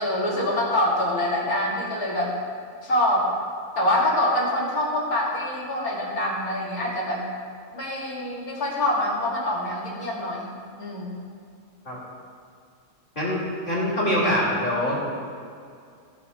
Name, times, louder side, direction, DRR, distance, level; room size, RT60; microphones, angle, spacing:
voice 1, 0.0-2.3 2.8-3.3 3.8-7.2 7.7-10.5 10.8-11.2, left 1 dB, 65° left, -4 dB, 2.7 m, -25 dB
voice 2, 13.7-15.0, equal, 30° left, -5 dB, 3.1 m, -23 dB
17.0 x 6.3 x 4.3 m, 2.3 s
omnidirectional pair, 1.7 m